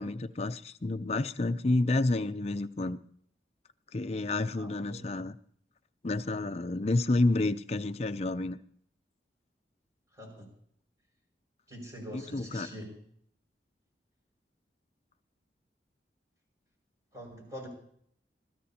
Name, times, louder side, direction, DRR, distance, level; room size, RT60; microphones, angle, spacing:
voice 1, 0.0-3.0 3.9-5.4 6.0-8.6 12.1-12.7, left 2 dB, 35° left, 9 dB, 0.5 m, -29 dB
voice 2, 4.6-5.1 10.1-10.5 11.7-12.9 17.1-17.7, equal, 20° right, 0 dB, 5.9 m, -44 dB
23.0 x 15.5 x 2.9 m, 0.65 s
head